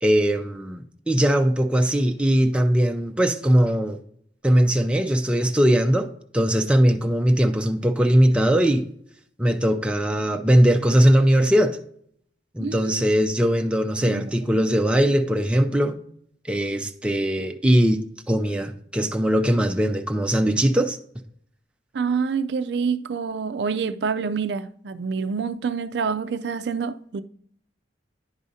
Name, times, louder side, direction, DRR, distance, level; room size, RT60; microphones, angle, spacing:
voice 1, 0.0-4.0 4.4-6.1 6.3-8.9 9.4-11.8 12.5-16.0 16.5-18.0 18.3-21.0, equal, 5° right, 0.4 m, -20 dB
voice 2, 12.6-13.0 14.0-14.6 21.9-27.2, right 5 dB, 70° right, 0.4 m, -27 dB
10.5 x 4.9 x 2.7 m
head